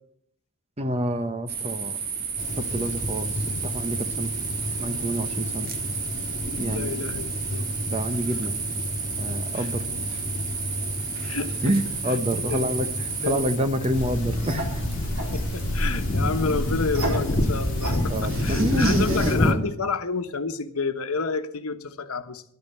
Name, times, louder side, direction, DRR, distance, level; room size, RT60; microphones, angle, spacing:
voice 1, 0.8-2.0 2.6-3.3 3.6-4.3 4.8-5.7 6.6-6.9 7.9-8.5 9.2-9.8 10.1-10.2 11.6-14.8 18.1-19.6, right 1 dB, 30° right, 9 dB, 1.0 m, -27 dB
sound 1, 1.5-13.6, right 6 dB, 45° right, 1.7 m, -32 dB
sound 2, 2.4-19.5, left 2 dB, 35° left, 2.1 m, -31 dB
voice 2, 6.7-7.7 9.6-9.7 11.2-11.7 12.5-12.6 13.2-13.4 15.3-22.4, left 4 dB, 85° left, 8 dB, 1.1 m, -30 dB
sound 3, 13.9-19.3, equal, 65° right, 4.2 m, -28 dB
12.0 x 8.8 x 8.2 m, 0.69 s
head